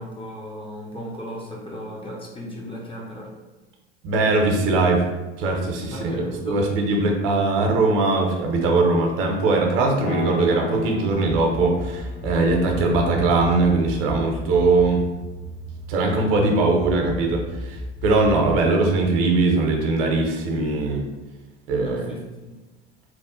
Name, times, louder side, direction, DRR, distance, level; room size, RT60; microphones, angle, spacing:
voice 1, 0.0-3.3 5.9-6.7 21.8-22.6, equal, 15° left, -3 dB, 0.6 m, -35 dB
voice 2, 4.0-5.0 5.4-15.0 15.9-17.8 18.0-21.0 21.7-22.1, right 3 dB, 50° right, 1 dB, 0.7 m, -21 dB
sound 1, 10.1-14.2, left 1 dB, 90° left, 0.6 m, -34 dB
sound 2, 11.3-18.6, right 1 dB, 45° left, 1.0 m, -34 dB
2.9 x 2.3 x 3.6 m, 1.1 s
figure-of-eight pair, 70°, 36 cm